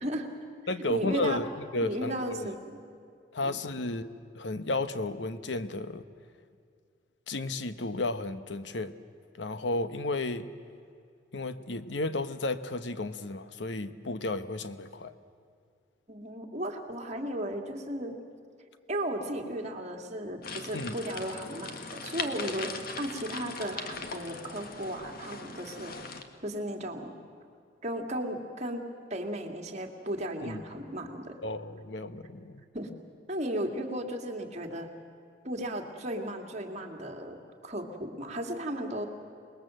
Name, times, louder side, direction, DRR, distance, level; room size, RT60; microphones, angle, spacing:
voice 1, 0.0-0.3 0.9-1.4 1.8-2.8 3.4-3.6 16.1-18.2 18.9-25.9 26.4-27.1 27.8-28.8 29.1-31.4 32.7-32.9 33.3-34.9 35.4-37.4 37.6-39.0, right 1 dB, 40° right, 2 dB, 2.4 m, -35 dB
voice 2, 0.7-1.5 1.7-2.5 3.3-4.1 4.3-6.0 7.3-8.9 9.4-10.5 11.3-15.1 20.7-20.9 30.4-30.6 31.4-32.6, left 2 dB, 85° left, 11 dB, 1.0 m, -33 dB
sound 1, 20.4-26.2, left 4 dB, 55° left, 1.7 m, -40 dB
27.5 x 20.5 x 7.8 m, 2.3 s
head